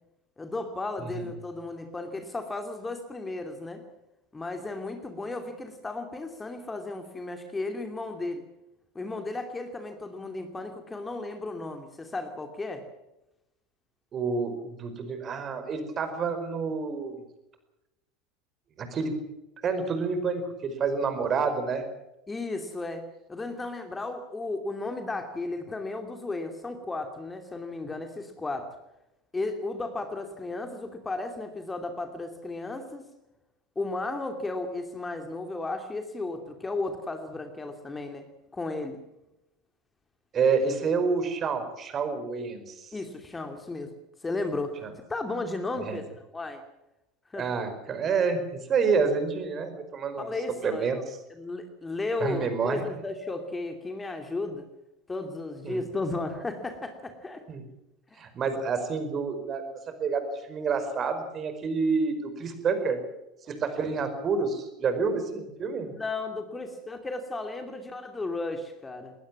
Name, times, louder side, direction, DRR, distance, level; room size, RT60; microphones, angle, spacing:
voice 1, 0.4-3.8 4.3-8.4 8.9-12.8 22.3-23.0 23.3-28.7 29.3-33.1 33.8-38.2 38.5-39.0 42.9-43.9 44.2-44.7 45.1-46.6 47.3-47.5 50.2-51.0 51.3-54.7 55.1-57.4 58.1-58.2 65.9-69.1, left 2 dB, 15° left, 6 dB, 2.7 m, -34 dB
voice 2, 14.1-17.1 18.8-19.2 19.6-21.9 40.3-42.9 44.8-44.9 45.8-46.0 47.4-48.4 48.7-50.3 50.6-51.0 52.2-52.8 55.6-55.8 57.5-57.6 58.2-63.0 63.5-65.9, right 5 dB, 30° right, 9 dB, 5.0 m, -28 dB
21.0 x 20.0 x 7.3 m, 0.92 s
figure-of-eight pair, 75°, 0 cm